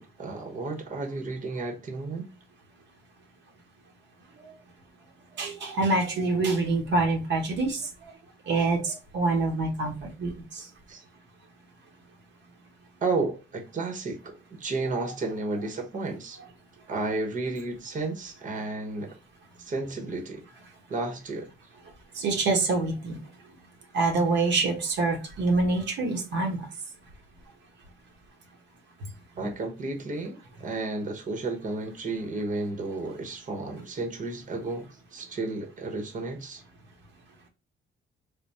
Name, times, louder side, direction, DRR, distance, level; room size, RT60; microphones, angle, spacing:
voice 1, 0.0-2.3 10.9-11.0 13.0-16.4 16.9-19.1 19.6-20.4 20.9-21.5 29.4-36.6, right 3 dB, 40° right, 1.0 m, -32 dB
voice 2, 5.4-7.9 8.5-10.7 15.0-15.1 22.2-23.2 23.9-26.7, right 3 dB, 70° right, 1.0 m, -26 dB
3.5 x 2.2 x 4.1 m
cardioid pair, 105°, 20 cm